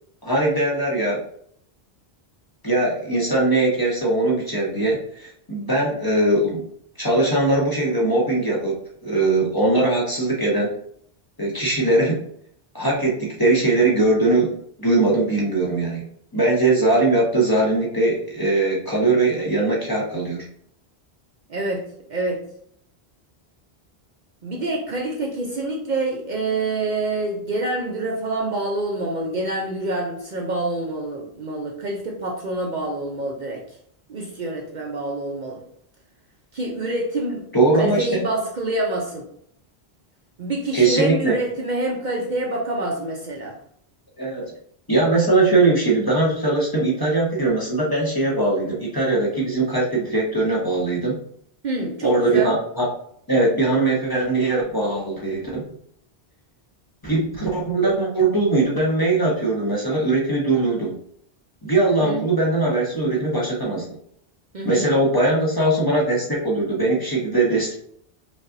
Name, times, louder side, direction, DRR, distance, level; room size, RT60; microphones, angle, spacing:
voice 1, 0.2-1.2 2.6-6.6 7.0-10.8 11.4-12.2 12.7-16.0 16.3-20.5 37.5-38.2 40.7-41.3 44.2-44.5 44.9-51.2 52.0-52.9 53.3-55.6 57.0-61.0 61.6-63.9 64.6-67.8, right 2 dB, 25° left, -5 dB, 0.8 m, -20 dB
voice 2, 21.5-22.4 24.4-33.6 34.1-35.6 36.5-37.5 37.7-39.3 40.4-43.6 51.6-52.5 61.9-62.3 64.5-64.9, right 2 dB, 55° right, 0 dB, 0.7 m, -26 dB
5.1 x 2.6 x 2.5 m, 0.66 s
omnidirectional pair, 1.1 m